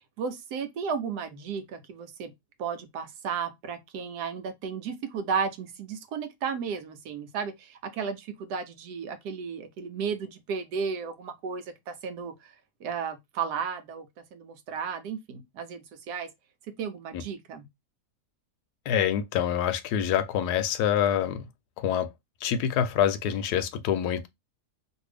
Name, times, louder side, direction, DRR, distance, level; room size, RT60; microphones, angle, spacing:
voice 1, 0.2-2.3 2.6-12.5 12.8-16.3 16.8-17.7, right 6 dB, 90° right, 1.2 m, -34 dB
voice 2, 18.9-21.4 21.8-22.1 22.4-24.3, left 9 dB, 80° left, 1.1 m, -26 dB
2.8 x 2.6 x 3.2 m
omnidirectional pair, 1.7 m